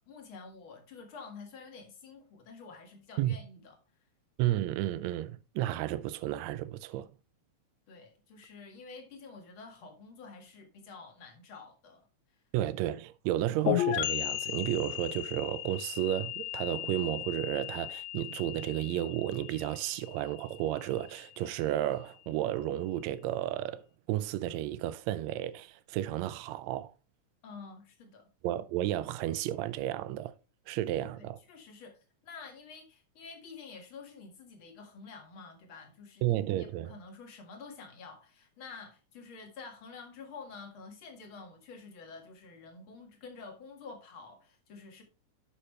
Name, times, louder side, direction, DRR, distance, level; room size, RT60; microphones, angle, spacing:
voice 1, 0.1-3.8 7.9-12.1 27.4-28.3 30.9-45.0, left 4 dB, 45° left, 2.4 m, -49 dB
voice 2, 4.4-7.1 12.5-23.8 24.1-26.9 28.4-30.3 30.7-31.4 36.2-36.9, right 13 dB, 75° right, 1.8 m, -32 dB
sound 1, 13.7-21.2, left 14 dB, 75° left, 1.9 m, -35 dB
11.5 x 5.8 x 3.3 m
omnidirectional pair, 3.5 m